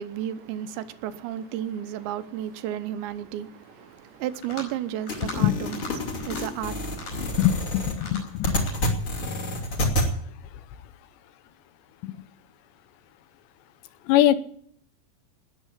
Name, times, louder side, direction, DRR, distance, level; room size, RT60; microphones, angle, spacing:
voice 1, 0.0-7.4, right 11 dB, 85° right, 3.1 m, -33 dB
sound 1, 4.3-4.8 5.1-5.4 5.7-5.9 6.2-6.4 6.9-7.7 8.0-8.8, left 2 dB, 55° left, 6.7 m, -39 dB
sound 2, 5.1-10.1, left 1 dB, 35° left, 3.0 m, -28 dB
voice 2, 7.4-8.7 12.0-12.1 14.1-14.4, left 13 dB, 80° left, 3.0 m, -22 dB
19.0 x 8.1 x 8.3 m
omnidirectional pair, 5.1 m